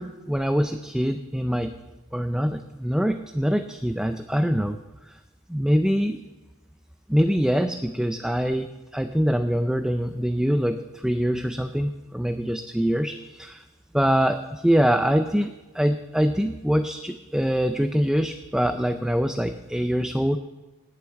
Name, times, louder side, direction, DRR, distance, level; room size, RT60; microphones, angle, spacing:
voice 1, 0.0-1.7 2.1-4.8 5.1-5.2 5.5-6.2 7.1-13.6 13.9-20.4, equal, 5° right, 8 dB, 0.5 m, -24 dB
19.0 x 8.1 x 7.2 m, 1.1 s
head